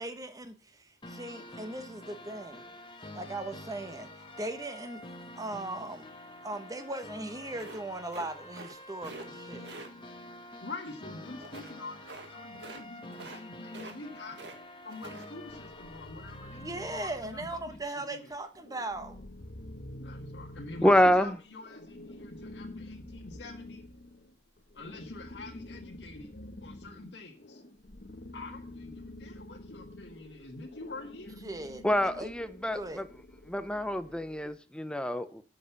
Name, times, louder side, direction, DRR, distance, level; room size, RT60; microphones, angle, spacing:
voice 1, 0.0-2.7 3.1-4.1 4.4-5.0 5.4-6.1 6.4-9.7 16.5-19.2 31.4-31.9 32.2-32.3 32.7-33.0, right 2 dB, 20° right, 1.2 m, -38 dB
sound 1, 1.0-17.0, left 1 dB, 30° left, 1.3 m, -48 dB
sound 2, 7.6-8.8 9.0-9.3 9.6-9.9 11.4-11.7 12.1-12.3 12.5-12.8 13.1-13.4 13.7-14.6 14.9-15.3, right 3 dB, 75° right, 1.6 m, -46 dB
voice 2, 10.6-14.4 14.8-18.3 19.8-23.8 24.7-26.3 26.6-27.6 28.3-31.4, left 3 dB, 85° left, 1.7 m, -45 dB
sound 3, 15.5-17.9 18.3-34.5, left 1 dB, 55° left, 1.2 m, -48 dB
voice 3, 20.8-21.3 31.8-33.0 33.5-35.4, equal, 5° left, 0.7 m, -26 dB
7.7 x 6.6 x 6.7 m
head